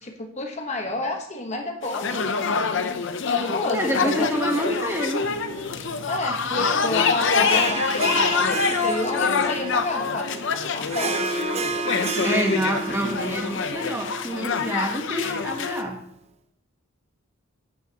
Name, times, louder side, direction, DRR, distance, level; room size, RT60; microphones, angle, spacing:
voice 1, 0.0-2.3 2.6-2.9 3.3-4.3 6.1-11.3 11.8-12.7, left 2 dB, 30° left, 3 dB, 1.1 m, -30 dB
sound 1, 1.8-15.8, left 5 dB, 55° left, 0.6 m, -25 dB
voice 2, 3.7-5.2 12.2-16.0, equal, 10° right, 2 dB, 1.2 m, -27 dB
sound 2, 5.1-10.4, left 2 dB, 60° right, 4.3 m, -45 dB
Harp, 7.3-15.9, right 3 dB, 30° right, 0.6 m, -31 dB
10.5 x 9.4 x 2.9 m, 0.68 s
head